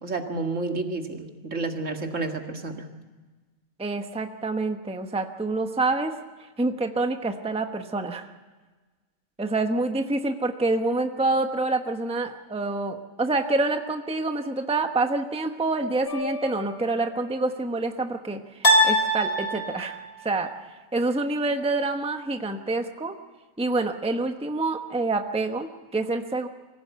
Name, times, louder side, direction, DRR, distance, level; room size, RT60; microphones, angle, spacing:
voice 1, 0.0-2.9, right 3 dB, 65° right, 4 dB, 2.2 m, -30 dB
voice 2, 3.8-6.1 6.6-8.3 9.4-20.5 20.9-23.1 23.6-26.5, right 2 dB, 5° right, 6 dB, 0.9 m, -27 dB
sound 1, 16.1-16.8 18.6-20.1, equal, 45° left, 3.4 m, -23 dB
24.0 x 16.0 x 8.2 m, 1.3 s
omnidirectional pair, 1.4 m